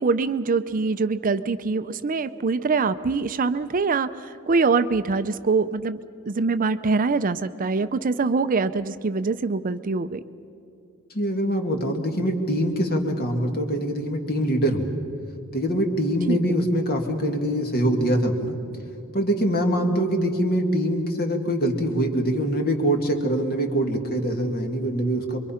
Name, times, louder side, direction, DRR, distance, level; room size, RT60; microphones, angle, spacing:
voice 1, 0.0-6.0 6.3-10.2 16.3-16.4, right 4 dB, 40° right, 12 dB, 0.5 m, -24 dB
voice 2, 11.1-14.9 15.5-18.6 19.1-25.4, equal, 45° left, 4 dB, 2.2 m, -24 dB
26.5 x 23.0 x 5.8 m, 2.6 s
head